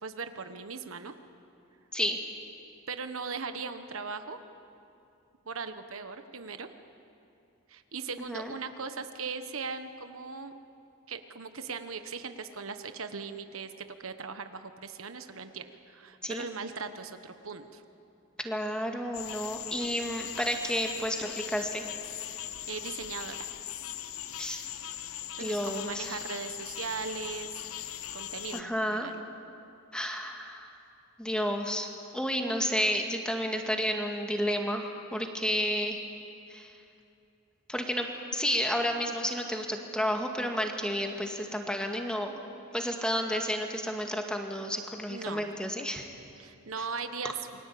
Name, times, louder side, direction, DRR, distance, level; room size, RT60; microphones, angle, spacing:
voice 1, 0.0-1.1 2.9-4.4 5.5-6.7 7.7-10.5 11.1-17.8 22.4-23.5 25.3-27.5 28.1-29.2 45.1-45.5 46.4-47.3, right 5 dB, 70° right, 9 dB, 1.3 m, -39 dB
voice 2, 18.4-21.8 24.4-24.6 25.4-26.2 28.5-29.1 29.9-30.7 31.2-36.0 36.5-36.7 37.7-42.3 42.7-46.1, equal, 5° left, 3 dB, 2.1 m, -31 dB
sound 1, 19.1-28.6, left 11 dB, 70° left, 0.9 m, -40 dB
28.5 x 23.0 x 8.6 m, 2.7 s
head